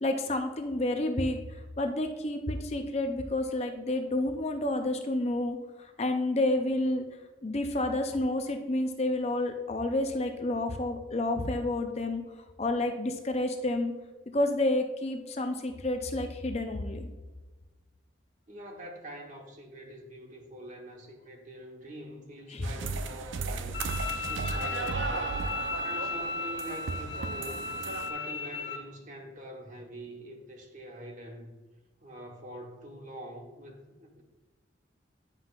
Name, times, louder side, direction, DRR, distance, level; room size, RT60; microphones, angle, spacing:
voice 1, 0.0-7.0 7.4-12.2 12.6-13.9 14.3-17.1 22.5-22.7, left 1 dB, 35° left, 5 dB, 0.5 m, -30 dB
voice 2, 18.5-23.8 24.3-25.4 25.8-27.7 28.1-31.5 32.0-34.2, equal, 40° right, 2 dB, 1.1 m, -45 dB
sound 1, 22.6-28.1, right 4 dB, 80° right, 0.5 m, -35 dB
Bowed string instrument, 23.7-28.8, left 3 dB, 65° left, 0.9 m, -35 dB
9.7 x 5.7 x 2.4 m, 1.2 s
head